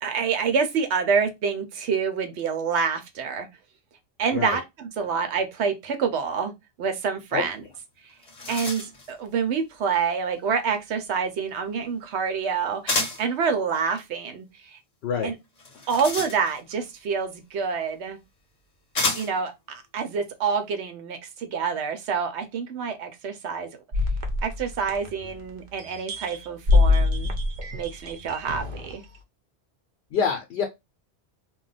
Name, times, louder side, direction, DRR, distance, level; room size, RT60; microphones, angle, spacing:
voice 1, 0.0-3.5 4.2-6.5 6.8-7.6 8.5-14.8 15.2-15.3 15.9-18.2 19.1-23.7 24.4-27.3 27.7-29.0, right 6 dB, 80° right, 0.9 m, -27 dB
sound 1, 7.7-7.8 8.1-9.1 12.9-13.3 15.6-16.8 17.9-18.0 18.9-19.5, left 2 dB, 40° left, 0.8 m, -29 dB
sound 2, 23.9-25.5 25.9-28.9, left 3 dB, 50° right, 0.7 m, -24 dB
voice 2, 30.1-30.6, left 6 dB, 75° left, 0.8 m, -26 dB
2.3 x 2.1 x 3.9 m
omnidirectional pair, 1.1 m